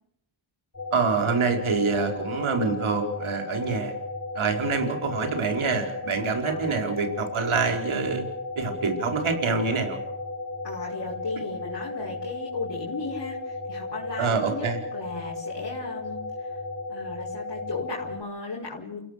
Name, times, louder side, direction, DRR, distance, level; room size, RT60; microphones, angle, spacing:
sound 1, 0.7-18.2, left 2 dB, 30° left, 4.3 m, -35 dB
voice 1, 0.9-3.9 4.3-8.2 8.5-10.0 14.2-14.8, right 4 dB, 80° right, 4 dB, 4.9 m, -26 dB
voice 2, 10.6-16.6 16.9-19.0, left 3 dB, 50° left, -3 dB, 5.4 m, -36 dB
29.5 x 17.0 x 6.7 m, 0.81 s
cardioid pair, 70°, 48 cm